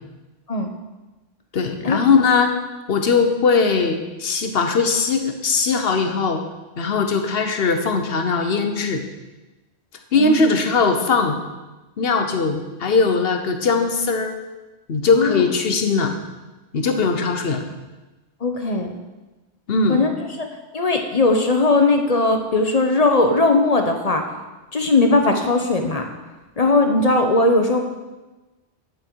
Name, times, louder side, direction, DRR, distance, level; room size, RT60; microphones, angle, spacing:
voice 1, 1.5-2.5 2.9-6.4 6.8-9.0 10.1-11.4 12.0-14.4 14.9-16.1 16.7-17.6 19.7-20.0, left 4 dB, 60° left, 6 dB, 1.2 m, -20 dB
voice 2, 10.1-10.5 15.1-15.4 18.4-18.9 19.9-20.1 20.4-20.5 20.7-24.2 24.7-26.0 26.6-27.9, left 2 dB, 35° left, 4 dB, 0.9 m, -18 dB
9.4 x 7.9 x 4.7 m, 1.1 s
omnidirectional pair, 1.1 m